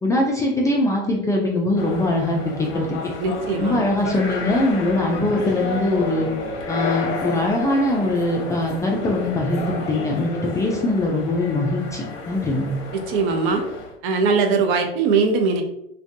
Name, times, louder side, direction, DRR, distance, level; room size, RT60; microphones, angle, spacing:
voice 1, 0.0-3.0 3.6-6.3 6.7-12.7, left 1 dB, 10° left, -2 dB, 0.3 m, -22 dB
sound 1, 1.7-13.9, left 3 dB, 45° left, 0.7 m, -31 dB
voice 2, 3.2-3.8 13.1-13.6 14.0-15.6, right 4 dB, 55° right, 5 dB, 0.6 m, -20 dB
2.4 x 2.2 x 2.5 m, 0.77 s
hypercardioid pair, 90°, 30 cm